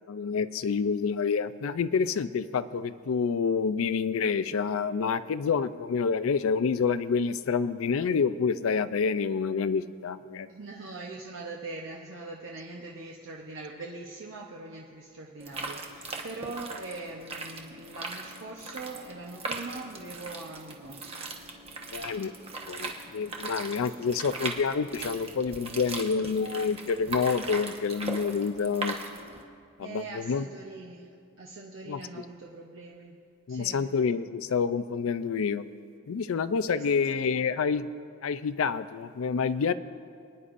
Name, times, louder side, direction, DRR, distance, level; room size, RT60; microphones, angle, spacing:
voice 1, 0.1-10.5 21.9-22.3 22.7-29.0 29.8-30.5 31.9-32.0 33.5-35.6 36.1-37.9 38.2-39.7, left 5 dB, 70° left, 14 dB, 0.4 m, -28 dB
voice 2, 10.5-21.1 24.0-24.1 29.8-33.9 36.6-37.4, right 3 dB, 60° right, -2 dB, 0.8 m, -42 dB
sound 1, 15.4-29.4, right 3 dB, 30° right, 0.9 m, -39 dB
27.5 x 9.8 x 2.6 m, 2.3 s
head